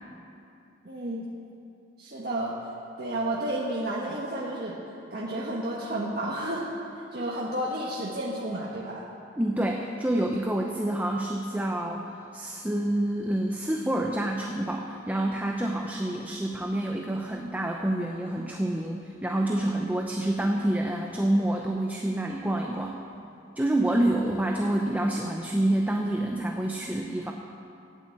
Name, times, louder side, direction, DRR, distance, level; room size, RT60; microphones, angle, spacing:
voice 1, 0.8-1.2 2.0-2.5 3.0-4.8 5.1-6.6 7.1-9.0, right 1 dB, 55° right, -4 dB, 1.3 m, -31 dB
voice 2, 9.4-23.0 23.6-27.3, right 1 dB, 10° right, 1 dB, 0.6 m, -27 dB
12.0 x 8.7 x 8.6 m, 2.6 s
head